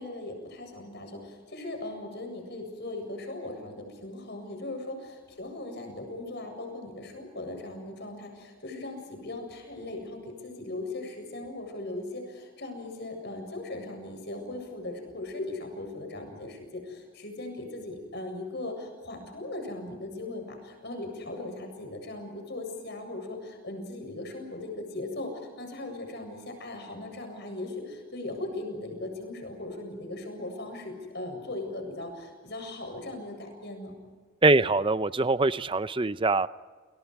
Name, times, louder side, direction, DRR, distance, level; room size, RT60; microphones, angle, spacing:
voice 1, 0.0-34.0, left 2 dB, 50° left, 5 dB, 7.8 m, -38 dB
voice 2, 34.4-36.5, right 3 dB, 25° right, 14 dB, 0.6 m, -23 dB
30.0 x 29.5 x 4.9 m, 1.4 s
head